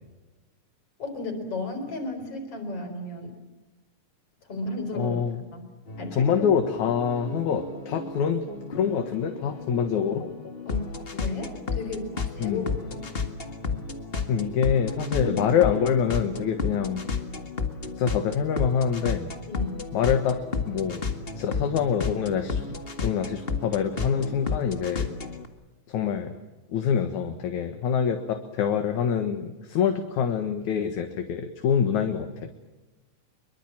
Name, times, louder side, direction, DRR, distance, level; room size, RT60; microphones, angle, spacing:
voice 1, 1.0-3.3 4.4-5.2 5.5-5.6 6.0-6.5 10.7-13.0 15.1-15.5 16.6-16.8 19.5-19.8, left 2 dB, 45° left, 6 dB, 5.3 m, -34 dB
voice 2, 5.0-5.4 6.1-10.3 12.4-12.6 14.3-17.0 18.0-19.3 19.9-21.0 21.3-22.6 23.0-25.1 25.9-26.3 26.7-32.5, left 7 dB, 65° left, 6 dB, 2.8 m, -25 dB
sound 1, 5.9-25.5, left 4 dB, 25° left, 1.2 m, -33 dB
25.5 x 23.0 x 7.5 m, 1.1 s
omnidirectional pair, 3.8 m